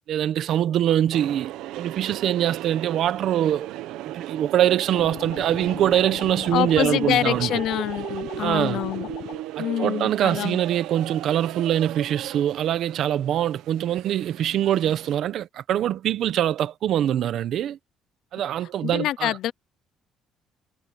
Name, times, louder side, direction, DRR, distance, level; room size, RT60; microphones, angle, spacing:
voice 1, 0.1-3.7 4.0-7.5 8.4-8.8 9.6-17.8 18.3-19.4, right 11 dB, 50° right, 1.0 m, -23 dB
sound 1, 1.1-15.2, right 15 dB, 85° right, 1.1 m, -37 dB
sound 2, 4.9-9.4, left 14 dB, 80° left, 1.4 m, -38 dB
voice 2, 6.5-9.1 9.6-10.6 18.8-19.5, left 12 dB, 55° left, 0.6 m, -26 dB
cardioid pair, 170°, 0 cm